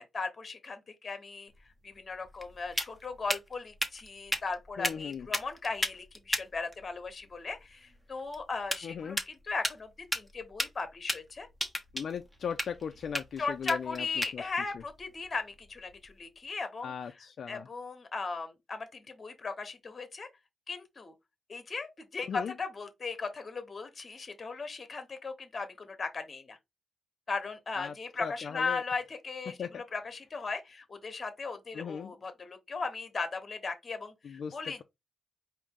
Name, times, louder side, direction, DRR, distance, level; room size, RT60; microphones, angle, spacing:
voice 1, 0.0-1.5 1.8-11.5 13.4-16.9 17.5-20.3 20.7-21.1 21.5-26.6 27.3-34.8, left 4 dB, 35° left, 1.0 m, -37 dB
sound 1, 1.5-16.2, equal, ahead, 0.9 m, -38 dB
voice 2, 4.8-5.3 8.8-9.2 11.9-14.4 14.7-14.8 16.8-17.7 22.2-22.5 27.8-28.8 29.5-29.8 31.7-32.1 34.2-34.8, left 7 dB, 60° left, 0.4 m, -38 dB
4.9 x 2.7 x 3.6 m
wide cardioid pair, 145°, 0 cm